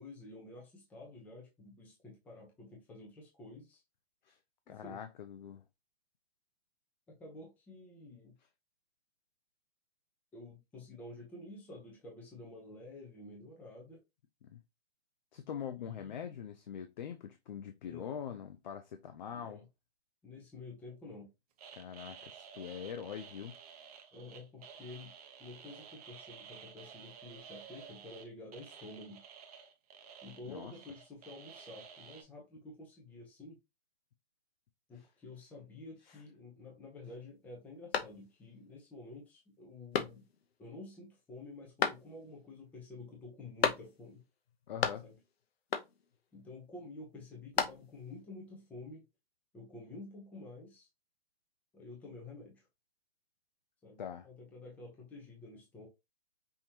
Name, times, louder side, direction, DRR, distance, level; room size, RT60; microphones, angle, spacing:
voice 1, 0.0-3.8 4.7-5.0 7.1-8.3 10.3-14.0 15.8-16.4 17.8-18.2 19.3-19.7 20.2-21.3 24.1-25.1 25.4-29.2 30.2-33.6 34.9-40.2 40.6-44.2 45.0-45.2 46.3-49.1 49.5-50.9 51.7-52.7 53.8-55.9, left 2 dB, 5° left, 0.7 m, -50 dB
voice 2, 4.7-5.6 14.4-14.6 15.3-19.6 21.7-23.5 30.4-30.7 36.1-36.2 44.7-45.0 54.0-54.3, left 8 dB, 45° left, 0.5 m, -43 dB
sound 1, 21.6-32.2, right 7 dB, 35° right, 0.8 m, -53 dB
sound 2, 37.9-38.6 39.0-39.1 39.9-40.5 41.8-42.4 43.6-44.2 44.5-45.3 45.7-46.2 47.2-48.1, left 7 dB, 65° left, 0.9 m, -35 dB
5.6 x 3.0 x 2.8 m
hypercardioid pair, 155°, 33 cm